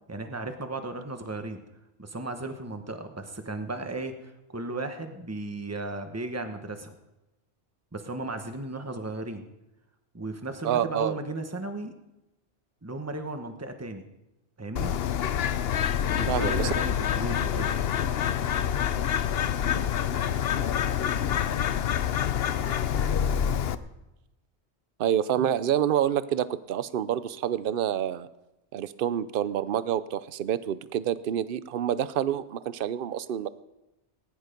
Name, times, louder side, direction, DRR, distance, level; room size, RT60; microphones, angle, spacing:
voice 1, 0.1-1.6 2.0-6.9 7.9-9.4 10.1-11.9 12.8-14.1 14.6-14.9 16.1-17.8, right 2 dB, 15° right, 6 dB, 1.2 m, -35 dB
voice 2, 10.6-11.2 16.3-16.7 25.0-28.3 28.7-33.5, right 10 dB, 55° right, 15 dB, 0.8 m, -27 dB
Bird, 14.8-23.8, left 9 dB, 65° left, 0.9 m, -27 dB
19.5 x 11.0 x 5.2 m, 0.96 s
omnidirectional pair, 1.2 m